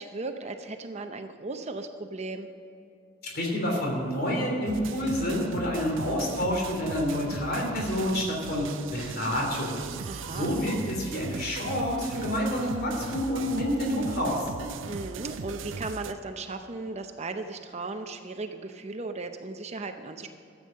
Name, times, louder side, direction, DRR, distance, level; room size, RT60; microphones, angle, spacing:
voice 1, 0.0-2.5 10.1-10.5 14.8-20.3, right 3 dB, 35° right, 6 dB, 0.7 m, -36 dB
voice 2, 3.2-9.8 10.3-14.5, equal, 50° left, -1 dB, 3.3 m, -28 dB
sound 1, 4.7-16.1, right 5 dB, 70° right, 0.5 m, -39 dB
14.0 x 8.5 x 6.5 m, 2.7 s
head